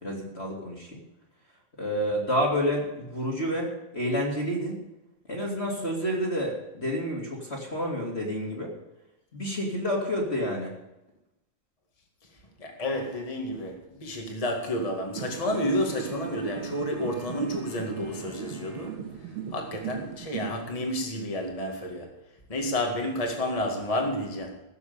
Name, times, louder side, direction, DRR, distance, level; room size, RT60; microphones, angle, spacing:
voice 1, 0.0-1.0 1.8-4.8 5.3-8.7 9.3-10.7, equal, 25° left, -1 dB, 1.5 m, -29 dB
voice 2, 12.6-19.0 19.5-22.2 22.5-24.6, left 1 dB, 60° left, 2 dB, 0.4 m, -30 dB
sound 1, 15.2-20.6, right 7 dB, 85° right, 4.1 m, -38 dB
16.5 x 7.4 x 6.8 m, 0.95 s
omnidirectional pair, 4.7 m